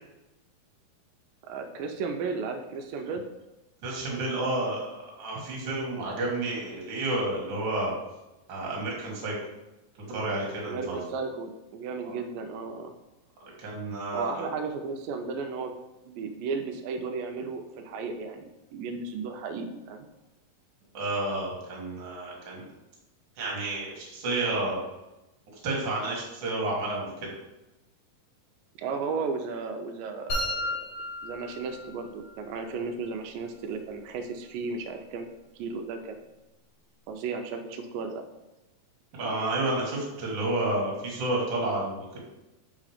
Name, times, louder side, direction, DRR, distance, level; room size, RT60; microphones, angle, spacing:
voice 1, 1.4-3.2 10.7-12.9 14.1-15.7 16.1-20.1 28.8-30.8 31.2-35.3 35.6-36.2 37.1-38.2, right 4 dB, 85° right, 5 dB, 2.3 m, -34 dB
voice 2, 3.8-7.9 8.5-9.3 10.1-11.0 12.0-12.2 13.6-14.4 20.9-22.6 23.4-24.8 25.6-27.3 39.1-42.2, right 2 dB, 45° right, -3 dB, 1.8 m, -30 dB
sound 1, 30.3-32.3, left 1 dB, 65° left, 2.9 m, -33 dB
5.8 x 3.7 x 4.9 m, 0.98 s
omnidirectional pair, 3.9 m